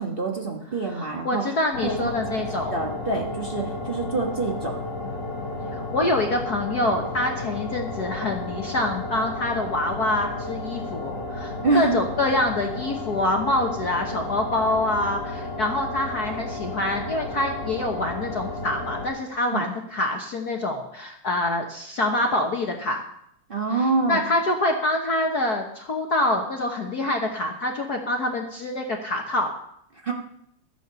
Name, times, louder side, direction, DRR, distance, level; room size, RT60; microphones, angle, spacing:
voice 1, 0.0-1.4 1.8-2.2 2.7-4.7 11.6-12.0 19.5-19.6 23.5-24.2 30.0-30.1, right 3 dB, 45° right, 1 dB, 0.7 m, -26 dB
voice 2, 0.9-2.8 5.7-23.0 23.7-29.5, left 2 dB, 60° left, 2 dB, 1.0 m, -26 dB
sound 1, 1.7-19.1, left 2 dB, 20° left, 3.1 m, -33 dB
13.0 x 9.6 x 6.9 m, 0.73 s
omnidirectional pair, 3.4 m